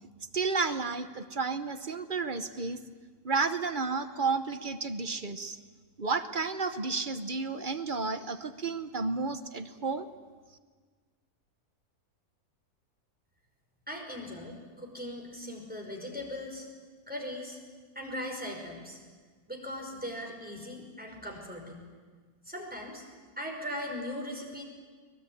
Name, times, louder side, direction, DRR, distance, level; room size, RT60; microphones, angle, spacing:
voice 1, 0.3-2.8 3.2-5.6 6.0-10.1, right 4 dB, 35° right, 10 dB, 1.0 m, -32 dB
voice 2, 13.9-16.7 17.1-17.6 18.0-19.0 19.5-21.9 22.4-23.0 23.4-24.6, left 1 dB, 5° right, 0 dB, 5.2 m, -39 dB
23.5 x 20.5 x 9.3 m, 1.5 s
omnidirectional pair, 1.7 m